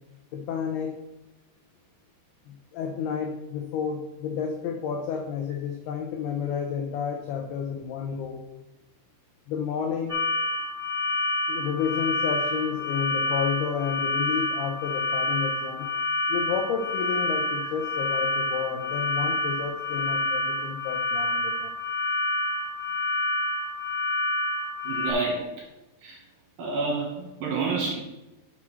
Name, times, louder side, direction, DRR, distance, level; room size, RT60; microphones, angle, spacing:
voice 1, 0.3-0.9 2.7-8.4 9.5-10.2 11.5-15.9 16.3-21.7, left 7 dB, 85° left, 3 dB, 2.2 m, -31 dB
sound 1, 10.1-25.1, left 2 dB, 15° right, 0.7 m, -28 dB
voice 2, 24.9-25.5 26.0-26.2 26.6-28.0, right 3 dB, 65° right, -2 dB, 2.5 m, -28 dB
6.1 x 5.9 x 6.1 m, 1.0 s
omnidirectional pair, 5.4 m